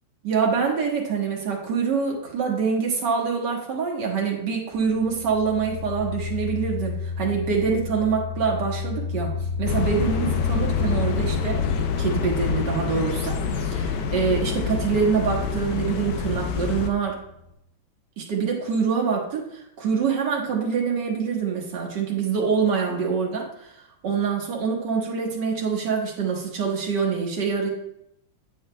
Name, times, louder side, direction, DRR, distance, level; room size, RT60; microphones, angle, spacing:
voice 1, 0.2-17.2 18.2-27.7, right 6 dB, 60° right, -1 dB, 1.9 m, -25 dB
sound 1, 4.7-17.5, left 5 dB, 25° left, 1.3 m, -33 dB
sound 2, 9.7-16.9, left 6 dB, 70° left, 1.1 m, -27 dB
9.3 x 7.1 x 2.2 m, 0.78 s
omnidirectional pair, 2.2 m